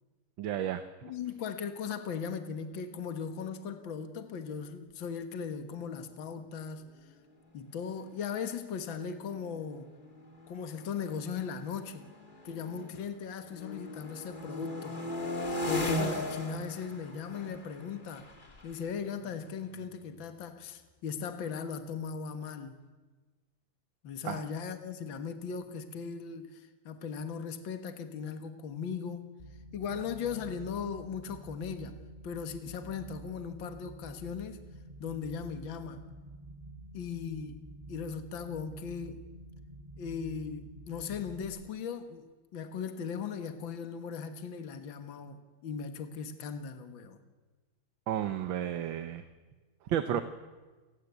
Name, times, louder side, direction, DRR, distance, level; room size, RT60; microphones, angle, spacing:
voice 1, 0.4-0.8 24.2-24.4 48.1-49.2 49.9-50.2, right 10 dB, 70° right, 10 dB, 1.7 m, -32 dB
voice 2, 1.0-6.8 7.5-9.9 10.5-12.0 12.4-15.0 15.7-18.3 18.6-22.8 24.0-29.3 29.7-32.0 32.2-34.6 35.0-36.0 36.9-37.6 37.9-39.2 40.0-42.3 42.5-47.2 50.1-50.2, left 6 dB, 65° left, 8 dB, 2.2 m, -38 dB
sound 1, 7.7-7.8 8.1-8.4 9.2-13.1 13.4-20.1, left 2 dB, 20° left, 2.6 m, -38 dB
sound 2, 29.4-41.4, right 1 dB, 25° right, 4.4 m, -49 dB
28.5 x 20.0 x 8.3 m, 1.3 s
omnidirectional pair, 2.3 m